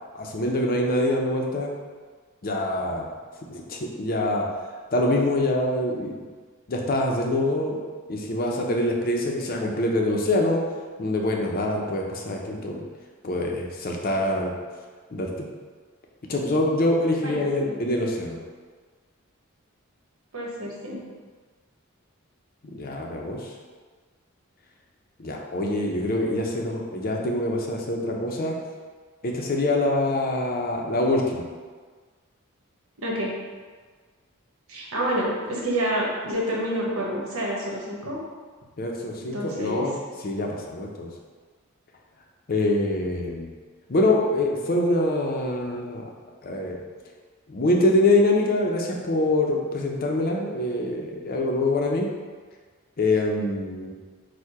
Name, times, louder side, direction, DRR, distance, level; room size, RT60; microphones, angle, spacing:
voice 1, 0.1-1.7 2.4-3.1 3.5-4.5 4.9-6.2 6.7-7.8 8.1-10.6 11.0-12.8 13.2-14.5 15.1-15.5 16.3-18.4 22.6-23.5 25.2-28.5 29.2-31.4 38.8-41.1 42.5-43.5 43.9-46.1 46.4-46.8 47.5-52.1 53.0-53.9, left 1 dB, 45° left, 0 dB, 0.5 m, -25 dB
voice 2, 17.2-17.9 20.3-21.0 33.0-33.3 34.7-38.2 39.3-39.9, equal, 85° right, -3 dB, 1.0 m, -28 dB
4.5 x 2.2 x 4.7 m, 1.5 s
head